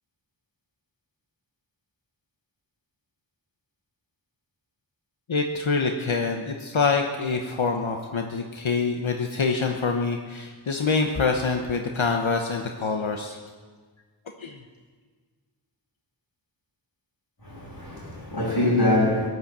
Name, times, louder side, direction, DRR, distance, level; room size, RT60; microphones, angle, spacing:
voice 1, 5.3-13.4 14.4-14.6, left 4 dB, 75° left, 1.2 m, -25 dB
voice 2, 17.4-19.3, left 1 dB, 55° left, 6.5 m, -24 dB
17.0 x 11.0 x 7.4 m
wide cardioid pair, 50°, 47 cm